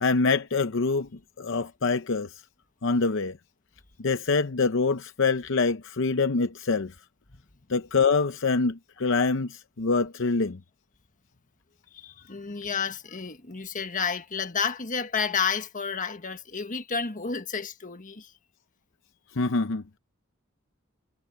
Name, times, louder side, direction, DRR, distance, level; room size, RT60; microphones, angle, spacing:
voice 1, 0.0-1.1 1.4-2.4 2.8-3.4 4.0-6.9 7.7-10.6 19.3-19.8, left 4 dB, 65° left, 0.7 m, -25 dB
voice 2, 11.9-18.3, left 6 dB, 40° left, 1.5 m, -31 dB
head